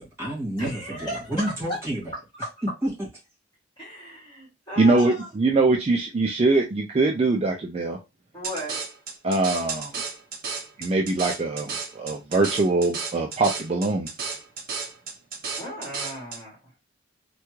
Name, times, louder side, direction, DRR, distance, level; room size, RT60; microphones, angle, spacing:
voice 1, 0.0-2.1 2.6-3.1, right 1 dB, 15° right, -6 dB, 1.8 m, -30 dB
voice 2, 0.6-1.8 3.8-5.3 8.3-8.8 15.6-16.6, equal, 25° left, -4 dB, 1.9 m, -35 dB
voice 3, 4.8-8.0 9.2-9.9 10.8-14.1, right 3 dB, 30° right, 2 dB, 0.3 m, -22 dB
sound 1, 8.4-16.4, right 5 dB, 45° right, 0.8 m, -33 dB
3.4 x 2.2 x 3.0 m, 0.25 s
head